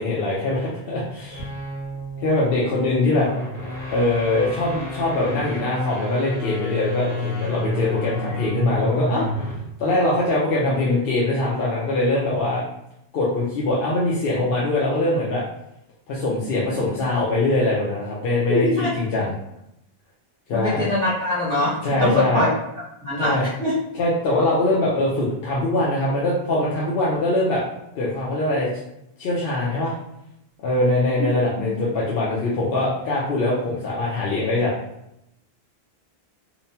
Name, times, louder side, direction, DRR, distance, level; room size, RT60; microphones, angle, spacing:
voice 1, 0.0-1.5 2.2-3.3 3.9-9.2 9.8-12.6 13.1-15.4 16.1-18.7 18.9-19.3 20.5-20.9 21.8-22.5 23.2-23.5 23.9-27.6 28.0-28.7 29.2-29.9 30.6-34.7, left 2 dB, 65° left, -6 dB, 0.8 m, -22 dB
sound 1, 1.2-9.7, left 1 dB, 25° left, 0.9 m, -30 dB
voice 2, 18.5-18.9 20.5-22.5 23.0-23.7 31.2-31.3 31.6-31.7, left 1 dB, 5° left, -13 dB, 0.5 m, -23 dB
2.9 x 2.1 x 2.7 m, 0.82 s
omnidirectional pair, 1.1 m